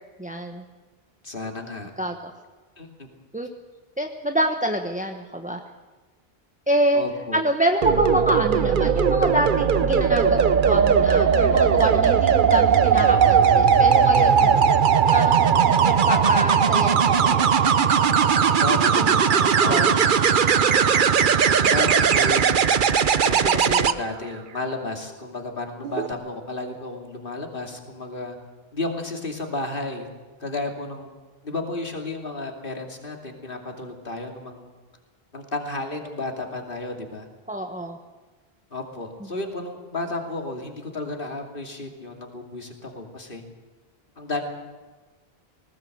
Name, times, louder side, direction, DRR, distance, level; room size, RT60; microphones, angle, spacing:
voice 1, 0.2-0.6 2.0-2.1 3.3-3.5 4.0-5.6 6.7-7.0 7.3-14.7 15.1-17.5 19.0-19.9 37.5-38.0, right 1 dB, 10° right, 4 dB, 1.1 m, -26 dB
voice 2, 1.2-1.9 2.8-3.1 6.9-7.4 18.6-19.2 19.6-20.1 21.7-21.9 22.1-22.7 23.2-28.4 28.7-30.1 30.4-31.1 31.4-34.7 35.3-37.3 38.7-43.4 44.2-44.4, left 2 dB, 60° left, 3 dB, 2.8 m, -32 dB
sound 1, 7.8-23.9 25.8-26.1, right 7 dB, 55° right, 0.9 m, -18 dB
19.5 x 19.0 x 7.9 m, 1.3 s
omnidirectional pair, 1.0 m